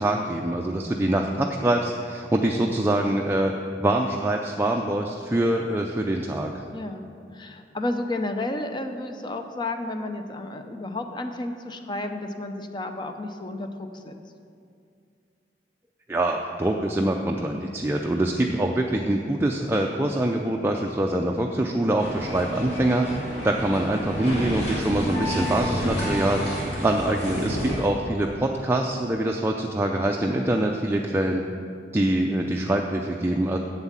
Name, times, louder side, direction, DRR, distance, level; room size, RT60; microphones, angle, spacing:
voice 1, 0.0-3.5 3.8-6.5 16.1-23.1 23.4-26.4 26.8-31.4 31.9-33.6, right 1 dB, 15° right, 1 dB, 0.4 m, -24 dB
voice 2, 6.7-7.1 7.3-14.1 25.1-25.6 30.5-30.7, left 2 dB, 25° left, 6 dB, 0.7 m, -32 dB
sound 1, 22.0-27.9, equal, 65° left, 3.1 m, -29 dB
8.1 x 7.8 x 7.3 m, 2.4 s
head